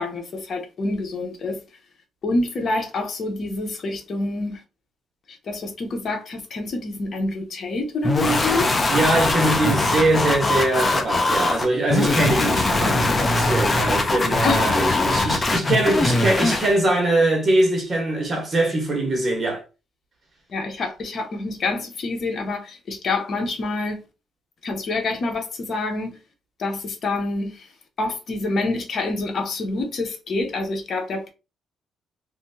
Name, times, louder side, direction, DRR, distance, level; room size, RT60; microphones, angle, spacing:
voice 1, 0.0-1.6 2.2-4.6 5.5-8.7 14.4-14.8 20.5-24.0 24.6-26.2 26.6-27.7 28.0-31.3, left 2 dB, 55° left, 1.1 m, -27 dB
sound 1, 8.0-16.7, left 2 dB, 25° left, 0.7 m, -21 dB
voice 2, 8.9-19.6, right 2 dB, 40° right, 1.5 m, -22 dB
3.3 x 2.8 x 2.8 m
cardioid pair, 90°, 0 cm